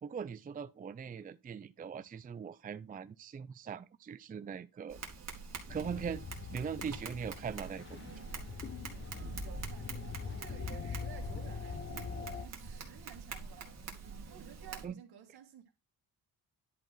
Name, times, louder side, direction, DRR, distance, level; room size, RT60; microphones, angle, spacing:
voice 1, 0.0-5.0 5.7-6.2 6.5-8.0 14.8-14.9, right 7 dB, 25° right, 0.4 m, -41 dB
Tap, 4.9-14.9, right 4 dB, 45° right, 2.4 m, -46 dB
sound 1, 5.7-12.5, left 6 dB, 30° left, 1.0 m, -43 dB
voice 2, 9.1-13.8 14.3-15.7, right 9 dB, 80° right, 2.3 m, -54 dB
11.0 x 4.6 x 4.3 m
cardioid pair, 140°, 38 cm